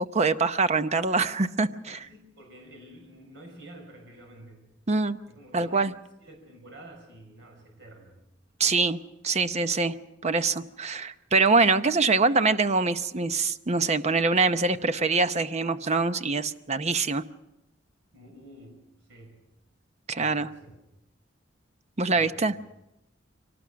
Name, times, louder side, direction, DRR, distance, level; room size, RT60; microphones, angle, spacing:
voice 1, 0.0-2.1 4.9-5.2 5.5-5.9 8.6-9.0 9.2-10.0 10.2-17.2 20.1-20.5 22.0-22.6, right 3 dB, 35° right, 11 dB, 0.7 m, -24 dB
voice 2, 1.9-4.7 5.3-5.9 6.2-8.1 18.1-18.8 19.1-19.4 20.2-20.7 22.1-22.6, right 1 dB, 70° right, 3 dB, 5.5 m, -49 dB
24.0 x 18.5 x 6.2 m, 0.91 s
head